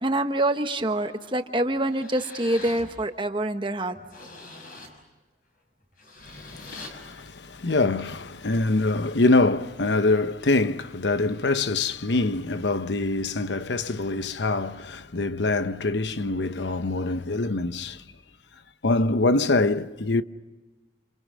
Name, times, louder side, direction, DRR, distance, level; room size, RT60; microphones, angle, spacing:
voice 1, 0.0-4.0, right 1 dB, 25° right, 1.2 m, -26 dB
sound 1, 1.2-1.3 1.8-2.9 3.4-3.5 3.9-5.0 5.8-6.9, left 2 dB, 50° left, 6.0 m, -43 dB
voice 2, 6.3-18.0 18.8-20.2, left 2 dB, 75° left, 0.9 m, -24 dB
28.0 x 28.0 x 6.3 m
head